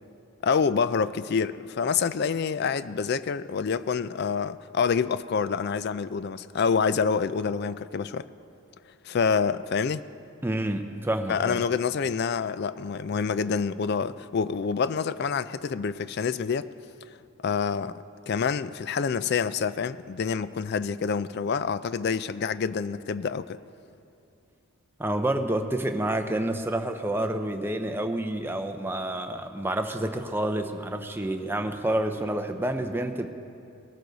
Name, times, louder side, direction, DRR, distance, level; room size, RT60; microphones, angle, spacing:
voice 1, 0.4-8.3 9.0-10.0 11.3-16.7 17.4-23.6, left 6 dB, 50° left, 0.3 m, -27 dB
voice 2, 10.4-11.6 25.0-33.3, right 1 dB, 10° right, 0.6 m, -28 dB
19.0 x 13.5 x 4.0 m
head